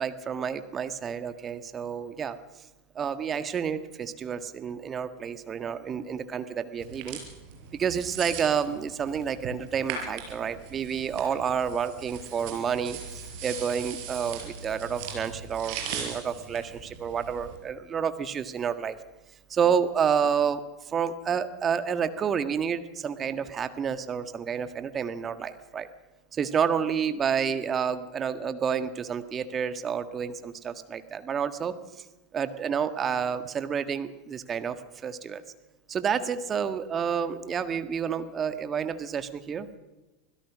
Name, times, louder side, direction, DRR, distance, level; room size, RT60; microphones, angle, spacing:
voice 1, 0.0-2.4 2.9-7.2 7.7-19.0 19.5-25.9 26.3-32.0 32.3-35.4 35.9-39.7, right 7 dB, 30° right, 11 dB, 1.6 m, -29 dB
sound 1, 6.8-17.6, right 6 dB, 55° right, 6.1 m, -40 dB
25.5 x 16.5 x 6.2 m, 1.1 s
figure-of-eight pair, 85°, 0 cm